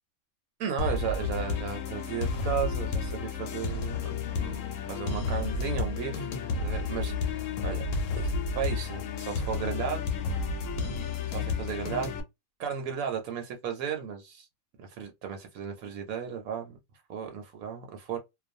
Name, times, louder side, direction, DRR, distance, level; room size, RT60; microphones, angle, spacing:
voice 1, 0.6-4.6 4.9-7.4 7.6-7.9 8.1-10.0 11.3-12.1 12.6-14.5 14.8-16.8 17.1-18.2, right 7 dB, 75° right, 1.0 m, -35 dB
sound 1, 0.8-12.2, left 4 dB, 70° left, 0.9 m, -31 dB
2.4 x 2.2 x 2.6 m
omnidirectional pair, 1.5 m